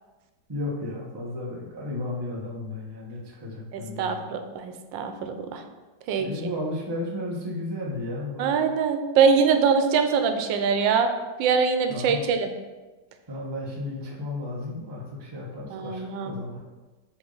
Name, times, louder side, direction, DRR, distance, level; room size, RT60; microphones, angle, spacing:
voice 1, 0.5-4.3 6.2-8.5 11.9-12.2 13.3-16.6, left 2 dB, 20° right, -3 dB, 0.7 m, -33 dB
voice 2, 3.7-5.6 6.1-6.3 8.4-11.1 11.4-12.5 15.7-16.3, right 6 dB, 90° right, 7 dB, 1.3 m, -23 dB
7.1 x 3.6 x 3.8 m, 1.2 s
omnidirectional pair, 2.0 m